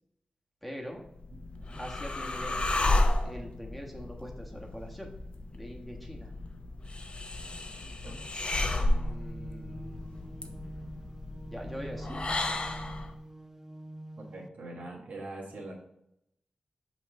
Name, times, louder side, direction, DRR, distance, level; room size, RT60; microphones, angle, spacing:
voice 1, 0.6-1.0 1.8-2.6 3.2-5.1 5.5-6.3 8.7-10.6 11.5-12.5, equal, ahead, -1 dB, 1.3 m, -43 dB
sound 1, 1.1-13.1, left 2 dB, 45° left, 0.6 m, -32 dB
voice 2, 7.8-8.2 14.2-15.7, right 2 dB, 70° right, -2 dB, 1.4 m, -43 dB
sound 2, 8.5-14.5, right 1 dB, 15° right, 0.3 m, -45 dB
5.8 x 3.1 x 5.2 m, 0.80 s
cardioid pair, 55°, 3 cm